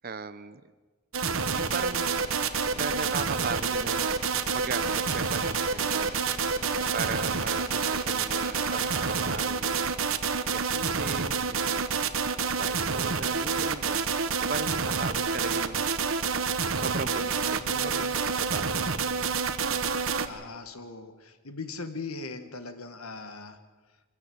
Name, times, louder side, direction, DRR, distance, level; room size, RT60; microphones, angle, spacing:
voice 1, 0.0-0.6 1.5-2.0 2.7-4.1 4.5-6.3 6.9-10.0 10.3-11.9 12.4-14.1 14.4-15.9 16.8-18.9, right 4 dB, 40° right, 13 dB, 0.6 m, -37 dB
sound 1, 1.1-20.3, right 5 dB, 70° right, 1.2 m, -28 dB
sound 2, 1.6-9.4, left 2 dB, 45° left, 5.7 m, -46 dB
voice 2, 17.6-18.1 20.2-23.6, left 3 dB, 80° left, 9 dB, 1.7 m, -40 dB
23.5 x 16.5 x 7.9 m, 1.3 s
head